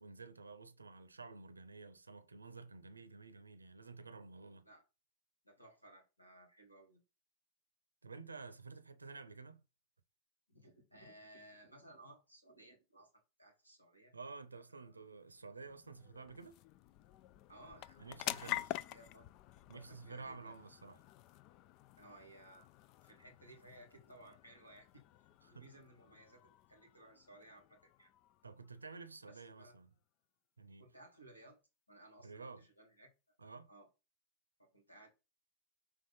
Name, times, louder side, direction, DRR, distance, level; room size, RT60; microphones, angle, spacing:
voice 1, 0.0-4.7 8.0-9.6 14.1-16.6 18.0-18.6 19.7-21.0 25.4-25.7 28.4-29.9 30.6-30.9 32.2-32.7 33.4-33.7, right 4 dB, 80° right, 0.7 m, -51 dB
voice 2, 5.4-7.0 10.5-14.1 14.5-15.1 17.5-19.2 19.7-20.6 22.0-22.7 23.0-25.0 25.5-28.1 29.2-29.8 30.8-31.6 31.9-33.1 33.7-33.9 34.6-35.1, right 1 dB, 90° left, 2.2 m, -59 dB
sound 1, 14.9-29.7, left 14 dB, 40° left, 0.3 m, -49 dB
5.9 x 3.3 x 5.5 m
figure-of-eight pair, 90°, 0 cm